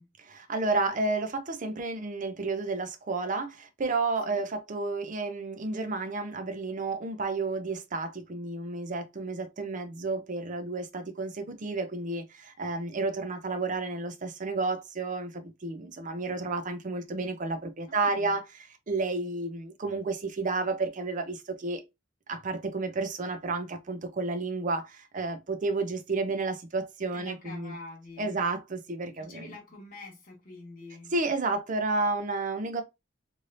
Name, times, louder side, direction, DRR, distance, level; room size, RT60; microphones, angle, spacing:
voice 1, 0.2-18.4 18.9-21.8 22.3-27.7 28.2-29.5 31.1-32.8, right 3 dB, 45° right, 0.6 m, -31 dB
voice 2, 17.9-18.4 27.1-28.4 29.2-31.1, left 2 dB, 45° left, 1.4 m, -46 dB
3.2 x 2.7 x 2.6 m
head